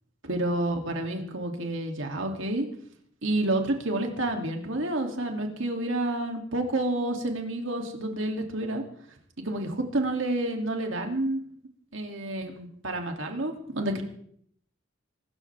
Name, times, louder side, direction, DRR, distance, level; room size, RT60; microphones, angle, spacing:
voice 1, 0.2-2.7 3.2-8.8 9.4-11.4 11.9-14.0, right 1 dB, 70° right, 3 dB, 2.8 m, -29 dB
24.5 x 13.5 x 3.5 m, 0.64 s
head